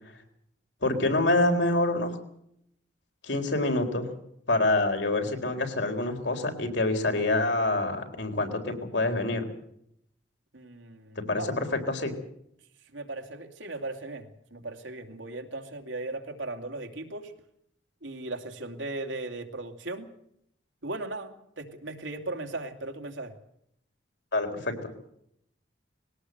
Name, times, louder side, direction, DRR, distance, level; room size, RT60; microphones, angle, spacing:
voice 1, 0.8-2.2 3.2-4.1 4.5-9.4 11.2-12.1 24.3-24.7, left 2 dB, 75° left, 4 dB, 4.0 m, -26 dB
voice 2, 10.5-11.5 12.9-17.3 18.0-20.1 20.8-23.3, right 2 dB, 85° right, 5 dB, 2.7 m, -37 dB
21.0 x 18.0 x 8.0 m, 0.74 s
head